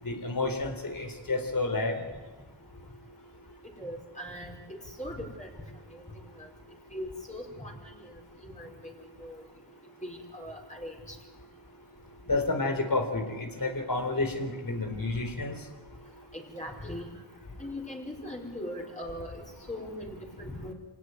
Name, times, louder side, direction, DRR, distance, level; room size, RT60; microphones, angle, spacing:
voice 1, 0.0-2.0 12.3-15.6, left 2 dB, 45° left, 5 dB, 4.1 m, -30 dB
voice 2, 3.8-5.5 5.9-6.0 6.4-6.5 6.9-8.0 8.4-8.9 9.2-9.4 10.0-11.2 16.3-17.1 17.6-20.7, left 1 dB, 15° left, -1 dB, 5.1 m, -40 dB
26.0 x 18.0 x 9.8 m, 1.2 s
cardioid pair, 75°, 46 cm